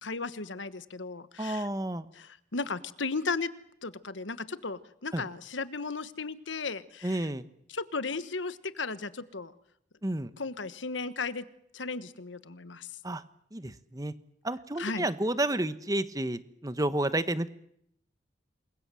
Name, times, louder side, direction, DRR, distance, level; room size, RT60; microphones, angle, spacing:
voice 1, 0.0-1.7 2.1-3.5 3.8-7.3 7.7-9.5 10.4-11.5 11.7-12.9 14.8-15.1, left 4 dB, 85° left, 14 dB, 1.3 m, -35 dB
voice 2, 1.4-2.1 5.1-5.2 7.0-7.5 10.0-10.3 13.0-13.2 13.5-14.1 14.4-17.5, right 1 dB, 20° right, 13 dB, 1.1 m, -31 dB
28.0 x 22.0 x 7.7 m, 0.73 s
head